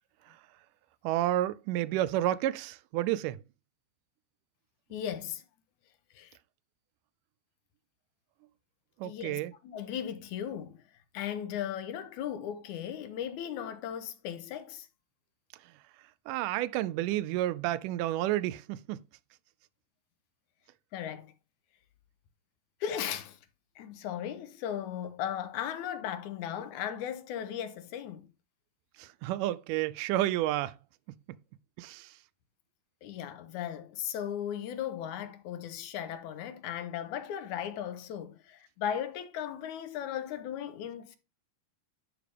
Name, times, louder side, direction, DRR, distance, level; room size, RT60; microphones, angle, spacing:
voice 1, 1.0-3.4 9.0-9.5 16.3-19.0 29.0-30.8 31.8-32.1, right 14 dB, 85° right, 2.1 m, -30 dB
voice 2, 4.9-5.4 6.2-6.3 9.0-10.8 11.1-14.9 20.9-21.3 22.8-23.4 23.8-28.3 33.0-41.2, left 9 dB, 75° left, 2.2 m, -37 dB
11.5 x 4.9 x 3.4 m
omnidirectional pair, 3.7 m